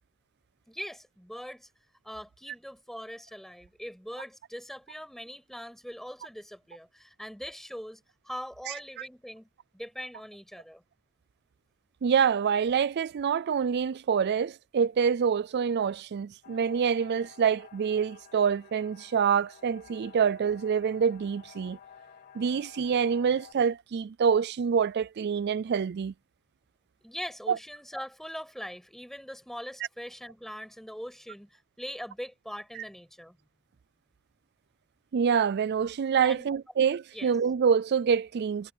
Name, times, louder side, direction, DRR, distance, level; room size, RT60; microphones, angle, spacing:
voice 1, 0.7-1.7 2.0-9.5 9.7-10.8 27.0-33.4 36.2-36.5 37.1-37.3, equal, ahead, 5.9 m, -41 dB
voice 2, 8.7-9.1 12.0-21.8 22.4-26.1 27.5-27.6 32.7-32.8 35.1-38.7, right 7 dB, 50° right, 0.4 m, -26 dB
sound 1, 16.4-23.5, left 7 dB, 45° left, 4.1 m, -53 dB
head